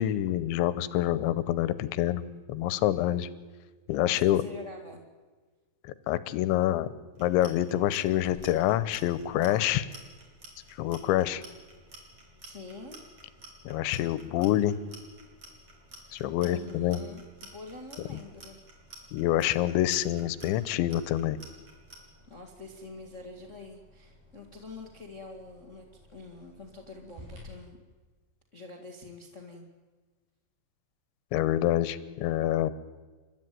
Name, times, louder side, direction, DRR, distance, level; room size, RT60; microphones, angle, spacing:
voice 1, 0.0-2.2 2.5-3.3 3.9-4.4 6.1-6.9 7.2-9.9 10.8-11.4 13.7-14.8 16.1-17.0 19.1-21.4 31.3-32.7, left 13 dB, 85° left, 16 dB, 3.2 m, -26 dB
voice 2, 4.0-5.0 12.4-13.0 16.4-18.6 22.3-27.8 28.5-29.6, left 3 dB, 65° left, 3 dB, 0.7 m, -46 dB
Clock, 7.1-22.0, right 3 dB, 30° right, 4.7 m, -49 dB
sound 1, 8.0-27.4, left 1 dB, 50° right, 9.2 m, -57 dB
30.0 x 13.5 x 9.4 m, 1.4 s
omnidirectional pair, 5.2 m